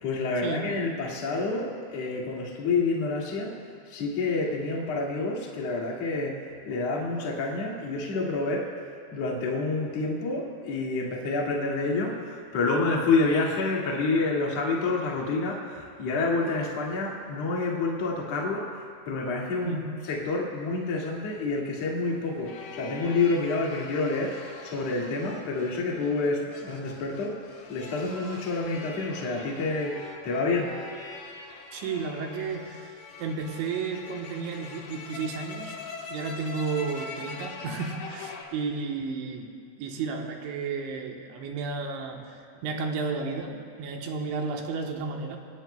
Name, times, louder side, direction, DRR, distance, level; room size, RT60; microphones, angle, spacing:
voice 1, 0.0-3.6 3.9-8.7 9.1-27.4 27.7-30.7, left 3 dB, 45° left, -2 dB, 2.4 m, -28 dB
sound 1, 20.7-38.4, left 4 dB, 65° left, 1.9 m, -43 dB
voice 2, 31.7-35.8 36.1-39.5 39.8-45.4, right 4 dB, 80° right, 2 dB, 3.4 m, -33 dB
26.5 x 18.5 x 2.2 m, 2.4 s
omnidirectional pair, 5.4 m